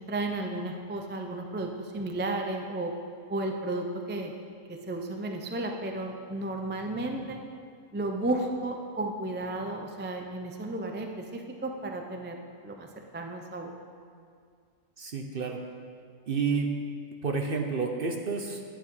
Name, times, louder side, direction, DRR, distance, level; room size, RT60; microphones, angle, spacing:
voice 1, 0.1-2.9 3.3-4.3 4.7-7.4 7.9-12.4 12.6-13.7, right 2 dB, 15° right, 3 dB, 0.4 m, -33 dB
voice 2, 15.0-15.6 16.3-16.7 17.2-18.8, right 5 dB, 50° right, 3 dB, 0.8 m, -30 dB
10.5 x 9.3 x 4.7 m, 2.1 s
omnidirectional pair, 1.5 m